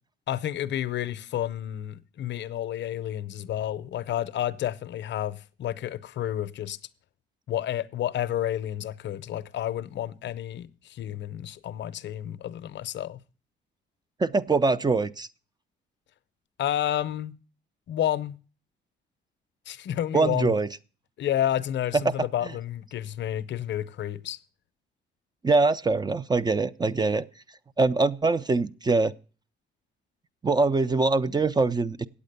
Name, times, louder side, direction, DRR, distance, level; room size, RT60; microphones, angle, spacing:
voice 1, 0.3-6.8 7.5-13.2 16.6-17.4 17.9-18.4 19.7-20.6 21.2-24.4, left 11 dB, 65° left, 0.6 m, -30 dB
voice 2, 14.2-15.3 20.1-20.7 25.4-27.2 27.8-29.1 30.4-32.1, right 3 dB, 20° right, 0.4 m, -23 dB
8.5 x 8.3 x 6.7 m
cardioid pair, 90°, 20 cm